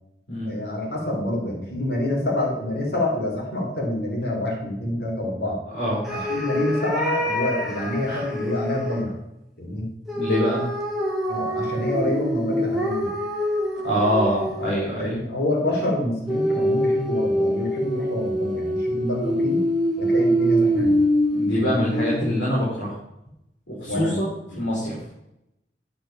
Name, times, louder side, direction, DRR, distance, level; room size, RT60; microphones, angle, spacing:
voice 1, 0.4-5.6 6.1-9.2 9.6-9.9 11.3-13.1 15.0-19.6 20.0-21.0 21.5-21.8 23.8-24.2 24.5-24.6, left 1 dB, 60° left, -1 dB, 3.1 m, -27 dB
ghostly humming, 6.0-9.0 10.1-14.8 16.3-22.4, equal, ahead, 2.3 m, -25 dB
voice 2, 10.2-10.6 13.8-15.1 21.3-22.9 23.7-24.3 24.6-24.9, equal, 75° left, -7 dB, 4.1 m, -24 dB
8.9 x 7.4 x 5.8 m, 0.84 s
head